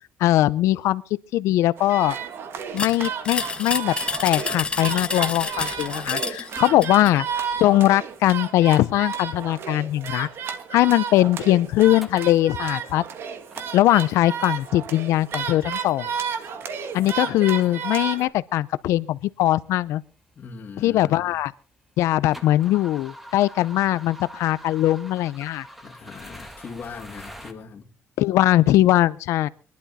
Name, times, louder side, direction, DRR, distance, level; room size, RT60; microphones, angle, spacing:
voice 1, 0.2-1.0 1.3-2.2 2.7-3.9 4.2-7.2 7.6-10.3 10.7-13.0 13.7-16.1 16.9-20.0 20.8-21.5 22.0-25.7 28.2-29.5, left 15 dB, 85° left, 0.6 m, -20 dB
sound 1, 1.8-18.3, right 7 dB, 55° right, 1.6 m, -32 dB
sound 2, 2.8-7.2, left 4 dB, 20° left, 1.1 m, -29 dB
sound 3, 12.0-12.4 12.8-13.1 13.5-14.1 14.6-14.9 15.3-16.0 16.9-17.0 17.9-18.0 18.4-18.5 19.2-19.3 19.5-21.4 21.8-27.5, equal, 5° right, 1.5 m, -44 dB
voice 2, 20.4-21.4 25.8-27.9, left 5 dB, 35° left, 2.4 m, -40 dB
23.0 x 11.5 x 4.1 m
cardioid pair, 145°, 5 cm